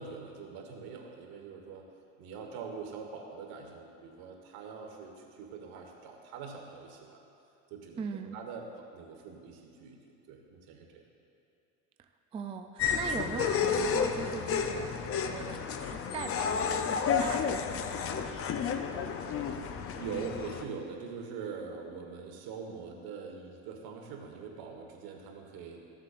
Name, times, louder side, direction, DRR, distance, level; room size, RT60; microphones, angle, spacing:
voice 1, 0.0-1.8 2.2-7.2 7.7-8.0 8.3-10.0 10.3-11.0 19.5-25.8, right 5 dB, 75° right, 1 dB, 1.5 m, -43 dB
voice 2, 8.0-8.4 12.0-14.9 15.3-19.2, right 6 dB, 15° right, 5 dB, 0.3 m, -41 dB
sound 1, 12.8-20.6, left 6 dB, 35° left, 0.6 m, -31 dB
14.5 x 7.6 x 2.5 m, 2.6 s
supercardioid pair, 110°, 38 cm